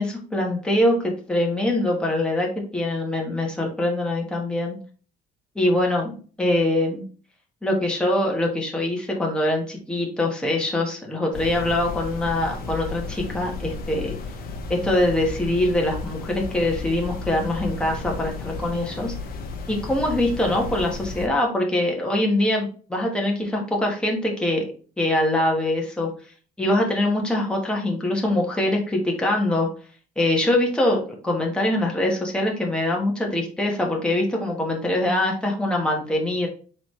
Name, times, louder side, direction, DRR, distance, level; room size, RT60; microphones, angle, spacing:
voice 1, 0.0-4.8 5.5-7.0 7.6-14.1 14.7-19.1 19.7-24.6 25.0-26.1 26.6-29.7 30.2-31.0 31.2-36.5, left 1 dB, 5° left, -1 dB, 1.1 m, -23 dB
sound 1, 11.3-21.3, left 4 dB, 60° left, 0.8 m, -33 dB
3.9 x 3.2 x 3.1 m, 0.40 s
cardioid pair, 110°, 17 cm